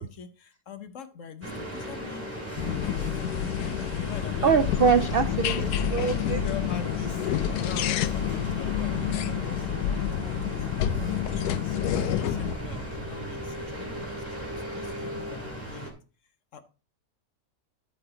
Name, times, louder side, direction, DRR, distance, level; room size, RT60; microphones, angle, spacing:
voice 1, 0.0-2.3 2.8-4.5 5.3-5.9 6.2-7.3 7.6-16.0 16.5-16.6, left 6 dB, 60° left, 1.2 m, -43 dB
sound 1, 1.4-15.9, right 1 dB, 10° right, 2.9 m, -37 dB
sound 2, 2.6-12.5, left 10 dB, 85° left, 1.1 m, -29 dB
voice 2, 4.4-6.4, right 6 dB, 65° right, 0.6 m, -24 dB
13.0 x 4.9 x 3.7 m
omnidirectional pair, 1.6 m